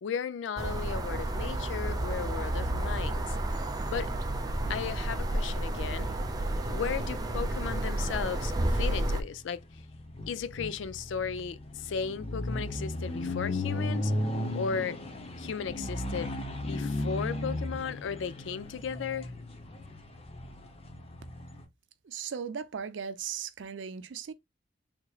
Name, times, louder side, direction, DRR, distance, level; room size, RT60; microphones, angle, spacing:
voice 1, 0.0-3.4 3.9-4.1 4.7-6.1 6.7-9.6 10.3-14.1 14.5-15.0 15.4-16.3 16.7-19.3, left 6 dB, 75° left, 0.4 m, -35 dB
sound 1, 0.6-9.2, right 1 dB, 20° right, 0.5 m, -31 dB
sound 2, 4.5-21.7, left 1 dB, 35° left, 0.7 m, -37 dB
voice 2, 22.0-24.3, right 7 dB, 80° right, 0.5 m, -37 dB
3.6 x 3.0 x 2.3 m
head